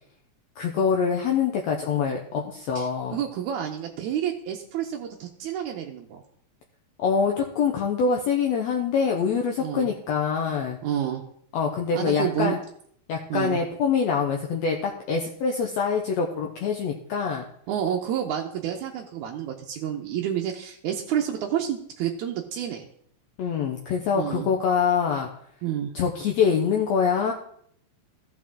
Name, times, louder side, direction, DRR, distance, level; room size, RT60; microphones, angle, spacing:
voice 1, 0.6-3.2 7.0-10.8 11.5-12.6 13.1-17.4 23.4-25.3 25.9-27.3, left 6 dB, 70° left, 1 dB, 1.9 m, -25 dB
voice 2, 2.8-6.2 9.6-9.9 10.8-11.2 11.9-12.6 13.3-13.6 17.7-22.8 24.1-24.5 25.6-25.9, right 10 dB, 90° right, 1 dB, 2.2 m, -29 dB
14.5 x 5.8 x 3.7 m, 0.65 s
omnidirectional pair, 3.3 m